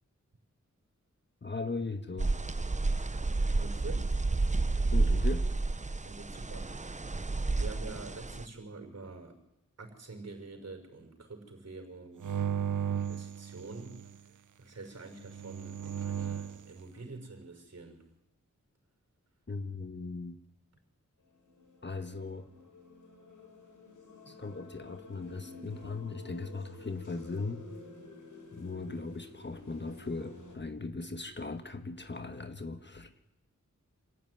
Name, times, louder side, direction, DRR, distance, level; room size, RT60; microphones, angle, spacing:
voice 1, 1.4-2.4 4.9-5.5 19.5-20.4 21.8-22.5 24.2-27.6 28.5-33.1, left 3 dB, 35° left, 9 dB, 1.5 m, -38 dB
sound 1, 2.2-8.5, right 3 dB, 25° right, 0.9 m, -30 dB
voice 2, 3.5-4.1 6.0-6.7 7.6-9.4 9.8-12.4 12.8-14.2 14.6-18.1 24.2-24.4, right 3 dB, 55° right, 5 dB, 5.9 m, -46 dB
sound 2, 12.2-14.2 15.2-16.7, right 8 dB, 85° right, 0.8 m, -35 dB
sound 3, 21.2-30.6, left 3 dB, 85° left, 6.4 m, -51 dB
26.5 x 15.5 x 9.7 m, 0.89 s
wide cardioid pair, 90°, 30 cm